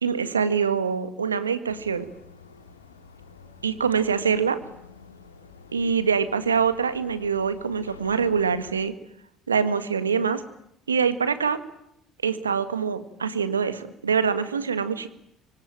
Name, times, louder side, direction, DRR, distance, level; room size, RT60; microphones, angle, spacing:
voice 1, 0.0-2.1 3.6-4.6 5.7-8.9 9.5-10.4 10.9-11.6 12.2-15.1, right 6 dB, 85° right, 11 dB, 1.7 m, -24 dB
sound 1, 1.7-8.7, left 4 dB, 85° left, 3.0 m, -49 dB
25.5 x 24.0 x 8.9 m, 0.78 s
figure-of-eight pair, 55°, 0 cm